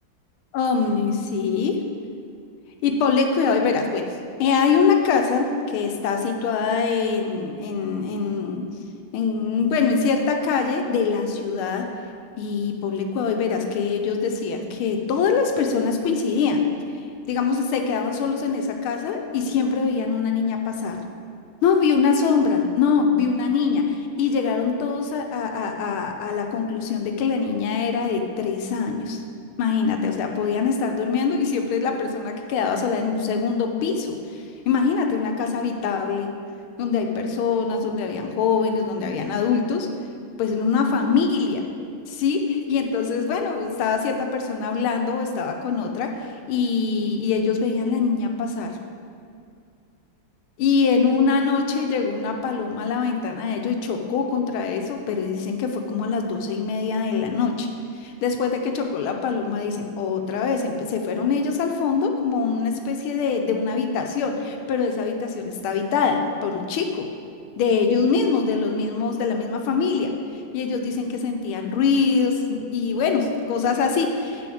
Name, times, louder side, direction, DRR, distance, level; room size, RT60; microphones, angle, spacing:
voice 1, 0.5-1.8 2.8-4.1 4.4-8.7 9.1-11.9 12.4-16.6 17.3-21.0 21.6-29.2 29.6-36.3 36.8-39.9 40.4-41.6 42.1-46.1 46.5-48.7 50.6-57.7 58.0-67.1 67.6-70.1 70.5-74.5, left 5 dB, 80° left, 4 dB, 1.6 m, -23 dB
6.9 x 5.6 x 6.2 m, 2.4 s
omnidirectional pair, 2.3 m